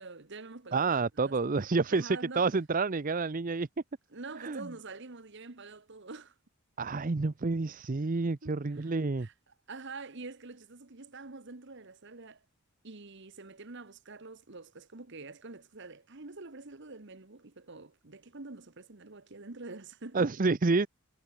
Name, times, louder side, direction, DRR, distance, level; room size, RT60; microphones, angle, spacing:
voice 1, 0.0-0.9 1.2-2.5 4.1-6.3 8.4-8.9 9.2-9.3 9.7-12.4 12.8-20.3, right 3 dB, 55° right, 1.3 m, -46 dB
voice 2, 0.7-3.7 4.4-4.7 6.8-9.3 20.1-20.9, right 3 dB, 40° right, 0.6 m, -29 dB
head